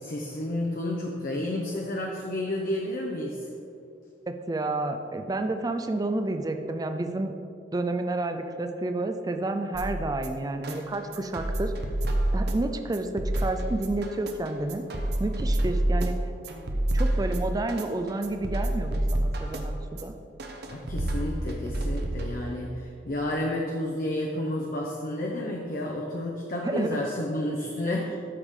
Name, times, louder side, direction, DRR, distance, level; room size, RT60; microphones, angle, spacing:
voice 1, 0.0-3.5 16.8-16.9 20.7-28.2, left 1 dB, 50° left, -1 dB, 0.7 m, -31 dB
voice 2, 4.3-7.3 7.7-11.7 12.3-14.8 15.2-16.2 16.9-20.1 26.6-27.0, right 2 dB, 20° right, 7 dB, 0.4 m, -30 dB
sound 1, 9.7-22.7, right 1 dB, 60° right, 0.8 m, -29 dB
13.0 x 4.9 x 3.7 m, 2.6 s
head